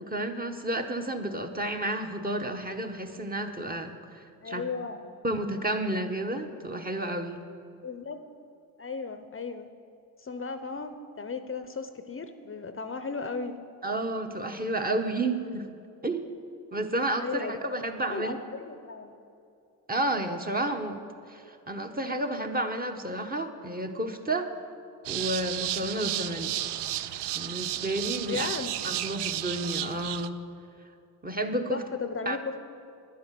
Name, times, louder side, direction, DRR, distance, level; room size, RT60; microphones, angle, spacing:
voice 1, 0.0-4.6 5.2-7.4 13.8-15.7 16.0-16.3 16.7-18.4 19.9-21.0 21.3-24.5 25.1-26.6 27.3-28.5 28.8-30.4 31.2-31.8 32.2-32.4, right 1 dB, 20° right, 5 dB, 1.1 m, -31 dB
voice 2, 4.4-5.0 7.8-8.2 8.8-9.7 10.2-13.6 17.2-17.6 18.1-19.1 28.3-28.8 31.7-32.6, left 4 dB, 30° left, 9 dB, 0.7 m, -35 dB
sound 1, 25.0-30.3, right 12 dB, 80° right, 0.6 m, -33 dB
10.0 x 9.5 x 7.6 m, 2.6 s
cardioid pair, 75°, 40 cm